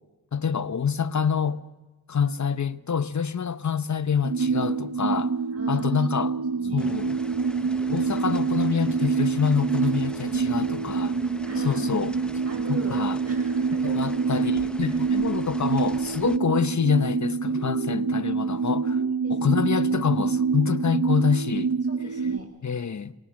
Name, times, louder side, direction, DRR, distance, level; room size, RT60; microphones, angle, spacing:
voice 1, 0.3-1.6 2.1-5.3 5.7-6.3 6.7-7.2 7.9-11.1 11.6-12.1 12.7-13.2 13.8-18.9 19.3-21.7 22.6-23.1, left 6 dB, 45° left, 0.8 m, -26 dB
sound 1, 4.2-22.4, right 5 dB, 55° right, 0.9 m, -26 dB
voice 2, 4.5-4.8 5.5-6.9 10.3-10.9 11.4-12.1 12.4-14.2 14.8-15.0 16.3-16.4 17.5-18.2 18.8-19.6 21.9-22.5, right 2 dB, 40° right, 6.2 m, -41 dB
sound 2, 6.8-16.4, equal, ahead, 0.8 m, -43 dB
27.0 x 19.0 x 6.4 m
wide cardioid pair, 65°, 39 cm